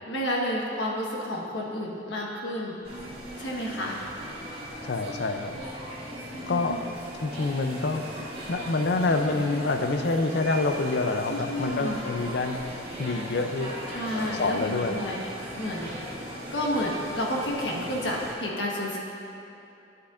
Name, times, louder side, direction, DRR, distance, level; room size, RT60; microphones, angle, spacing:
voice 1, 0.1-2.7 3.4-4.0 6.3-6.8 11.3-12.0 13.9-15.3 15.5-15.9 16.5-19.0, equal, 75° left, -2 dB, 1.4 m, -30 dB
sound 1, 2.8-18.3, equal, 30° right, 1.6 m, -38 dB
voice 2, 4.8-5.6 6.5-6.8 7.2-8.0 8.5-13.7 14.1-15.0, left 3 dB, 60° left, 7 dB, 0.5 m, -27 dB
11.5 x 8.2 x 2.5 m, 2.9 s
head